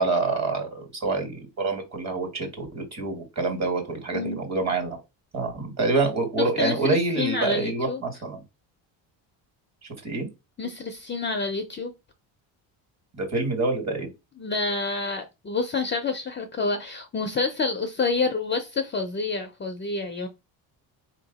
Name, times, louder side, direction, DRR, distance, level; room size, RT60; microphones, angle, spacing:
voice 1, 0.0-5.0 5.3-8.4 10.0-10.3 13.1-14.1, right 3 dB, 35° right, 1.9 m, -26 dB
voice 2, 6.4-8.0 10.6-11.9 14.4-20.3, left 3 dB, 25° left, 0.5 m, -28 dB
4.2 x 2.9 x 4.0 m
cardioid pair, 115°, 46 cm